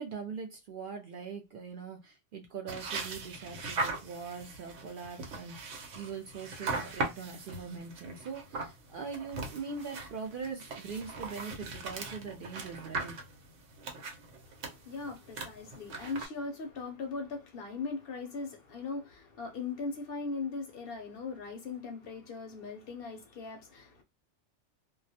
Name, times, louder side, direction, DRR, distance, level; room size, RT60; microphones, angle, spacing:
voice 1, 0.0-13.2, right 5 dB, 60° right, 0.6 m, -42 dB
sound 1, 2.7-16.3, right 3 dB, 90° right, 1.0 m, -40 dB
voice 2, 14.4-24.0, left 4 dB, 60° left, 0.7 m, -39 dB
2.2 x 2.1 x 2.6 m
omnidirectional pair, 1.2 m